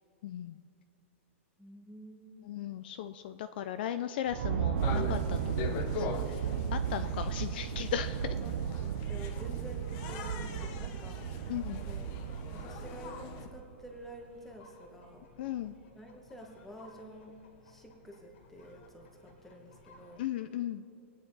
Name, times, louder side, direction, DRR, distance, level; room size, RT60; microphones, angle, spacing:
voice 1, 0.2-0.6 2.4-8.4 11.5-11.8 15.4-15.8 20.2-20.8, left 10 dB, 45° left, 10 dB, 0.5 m, -37 dB
voice 2, 1.6-2.4 9.1-11.2 11.9-12.1 12.5-15.2 15.9-17.3 17.6-20.2, right 1 dB, 5° left, 1 dB, 1.3 m, -49 dB
sound 1, 4.3-13.9, right 9 dB, 70° right, 0.5 m, -35 dB
sound 2, 4.8-13.5, left 6 dB, 30° left, 0.9 m, -42 dB
sound 3, 9.8-20.3, left 3 dB, 65° left, 2.1 m, -60 dB
24.5 x 9.3 x 4.0 m, 2.6 s
supercardioid pair, 175°, 7 cm